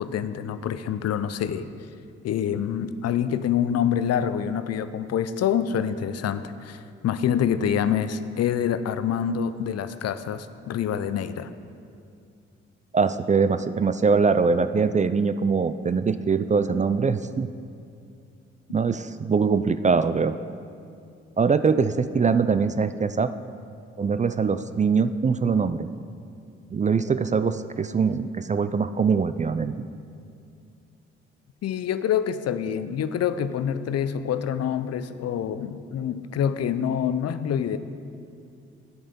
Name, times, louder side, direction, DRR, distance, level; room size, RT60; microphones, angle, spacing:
voice 1, 0.0-1.7 2.2-11.5 31.6-37.8, left 8 dB, 55° left, 12 dB, 0.6 m, -26 dB
voice 2, 12.9-17.5 18.7-20.4 21.4-23.3 24.0-25.9 26.7-29.9, right 5 dB, 25° right, 12 dB, 0.4 m, -23 dB
9.7 x 8.6 x 5.2 m, 2.4 s
hypercardioid pair, 40°, 30 cm